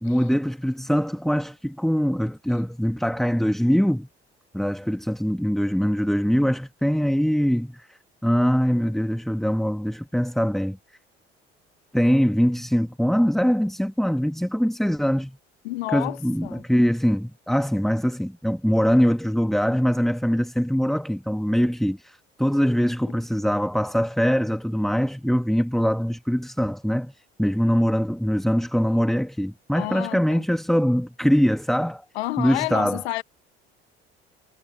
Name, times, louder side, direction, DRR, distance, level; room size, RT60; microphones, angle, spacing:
voice 1, 0.0-4.1 4.5-7.9 8.2-10.8 11.9-15.4 15.9-27.1 27.4-32.0 32.4-33.0, equal, ahead, 2.6 m, -22 dB
voice 2, 15.6-16.6 23.1-23.2 29.7-30.4 32.1-33.2, left 19 dB, 70° left, 1.7 m, -30 dB
figure-of-eight pair, 55°, 32 cm